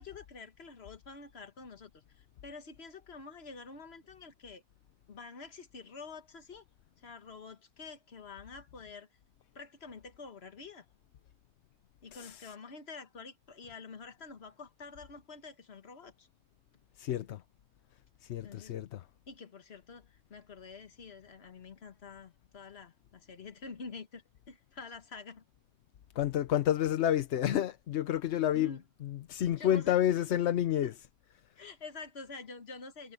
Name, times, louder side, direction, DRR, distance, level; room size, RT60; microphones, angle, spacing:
voice 1, 0.0-4.6 5.1-6.6 7.0-9.1 9.5-10.9 12.0-16.3 18.4-18.7 19.3-25.4 28.5-28.8 29.5-30.2 30.8-30.9 31.6-33.1, left 4 dB, 70° left, 1.7 m, -48 dB
voice 2, 12.1-12.5 17.0-17.4 18.3-19.0 26.2-28.7 29.0-30.9, left 11 dB, 90° left, 1.0 m, -29 dB
omnidirectional pair, 1.1 m